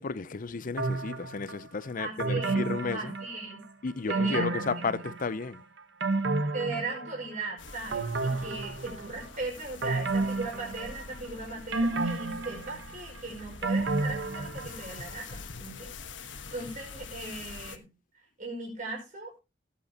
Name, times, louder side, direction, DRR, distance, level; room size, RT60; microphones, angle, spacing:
voice 1, 0.0-3.1 3.8-5.6, left 4 dB, 45° left, 0.6 m, -33 dB
sound 1, 0.8-1.6 2.2-3.6 4.1-5.4 5.8-7.5 7.9-9.3 9.8-11.3 11.7-15.0 15.3-15.4, right 3 dB, 70° right, 1.2 m, -31 dB
voice 2, 2.0-2.6 2.9-3.6 4.1-4.9 6.5-15.9 16.2-17.9 18.4-19.4, right 3 dB, 45° right, 5.3 m, -38 dB
sound 2, 7.6-17.8, left 4 dB, 80° left, 1.3 m, -45 dB
18.0 x 8.6 x 2.9 m
head